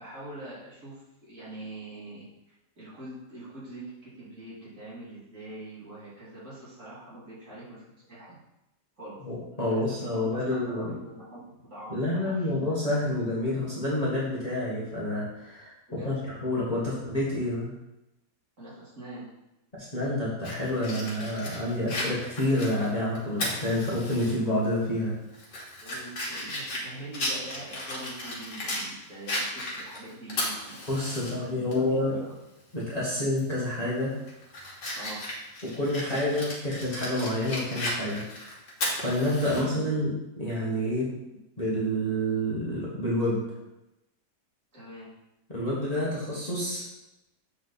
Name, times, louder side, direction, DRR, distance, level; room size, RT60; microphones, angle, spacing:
voice 1, 0.0-8.4 9.0-9.2 9.7-11.4 11.7-12.5 15.9-16.3 18.6-19.3 25.8-30.8 31.0-32.3 33.1-33.2 34.9-35.2 39.5-39.9 44.7-45.1, right 1 dB, 50° right, -8 dB, 2.7 m, -43 dB
voice 2, 9.2-10.9 11.9-15.7 16.0-16.1 16.4-17.7 19.8-25.1 30.9-32.2 32.7-34.2 35.6-38.3 39.0-41.1 41.6-43.4 45.5-46.8, left 1 dB, 25° left, -7 dB, 1.6 m, -28 dB
Fire, 20.4-24.3 24.7-24.8 25.3-28.9 29.3-31.3 31.7-31.8 33.3-33.5 34.0-39.6, left 1 dB, 80° left, 2.2 m, -35 dB
7.8 x 4.1 x 4.1 m, 0.94 s
omnidirectional pair, 1.7 m